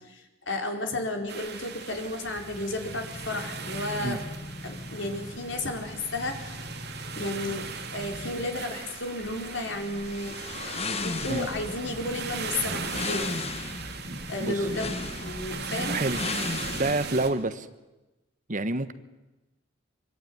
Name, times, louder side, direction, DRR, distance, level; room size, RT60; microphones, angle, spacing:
voice 1, 0.1-4.2 4.6-6.7 7.2-10.4 10.6-13.3 14.3-16.0, left 2 dB, 70° left, 2 dB, 4.7 m, -33 dB
sound 1, 1.3-17.3, right 5 dB, 60° right, 3.1 m, -38 dB
sound 2, 1.6-16.9, left 3 dB, 35° left, 1.1 m, -37 dB
voice 2, 14.0-14.7 15.9-16.2 16.7-17.7 18.5-18.9, right 2 dB, 40° right, 11 dB, 1.3 m, -28 dB
25.0 x 24.0 x 9.6 m, 1.0 s
head